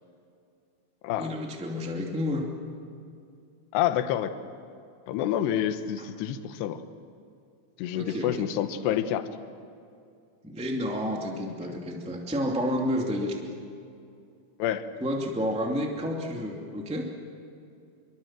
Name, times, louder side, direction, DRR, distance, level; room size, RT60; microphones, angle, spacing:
voice 1, 1.2-2.4 6.0-6.1 7.9-8.5 10.4-13.4 15.0-17.0, equal, 10° right, 0 dB, 0.3 m, -30 dB
voice 2, 3.7-4.3 5.1-6.8 7.8-9.3 11.7-11.8 14.6-14.9, left 11 dB, 70° left, 10 dB, 2.8 m, -28 dB
26.5 x 24.0 x 7.5 m, 2.5 s
omnidirectional pair, 5.7 m